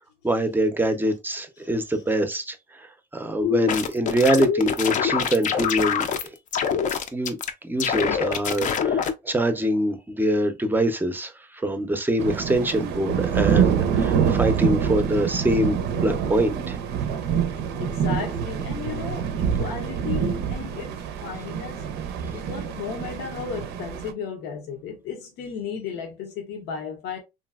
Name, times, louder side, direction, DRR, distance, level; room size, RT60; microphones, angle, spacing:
voice 1, 0.2-6.3 6.9-7.4 7.6-15.8 16.0-16.8, right 1 dB, 10° right, 0.5 m, -24 dB
voice 2, 1.6-2.0 17.8-21.9 22.3-27.2, left 6 dB, 85° left, 0.7 m, -35 dB
sound 1, 3.4-6.3 6.5-7.5 7.8-9.1, left 7 dB, 50° left, 0.5 m, -24 dB
sound 2, 12.2-24.1, right 8 dB, 80° right, 0.5 m, -26 dB
3.1 x 2.6 x 2.3 m
cardioid pair, 110°, 17 cm